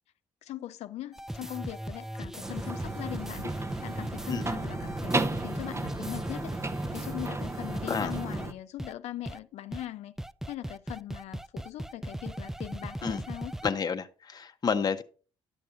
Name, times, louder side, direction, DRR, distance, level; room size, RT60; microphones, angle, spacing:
voice 1, 0.4-6.6 6.9-10.1 10.5-13.6, left 14 dB, 75° left, 0.4 m, -40 dB
sound 1, 1.1-8.5 8.8-8.9 9.3-9.4 9.7-9.8 10.2-13.7, right 1 dB, 5° right, 0.3 m, -38 dB
sound 2, 2.4-8.5, right 2 dB, 25° right, 0.8 m, -34 dB
voice 2, 13.6-15.0, left 6 dB, 35° left, 0.8 m, -29 dB
11.5 x 6.7 x 2.5 m
cardioid pair, 75°, 11 cm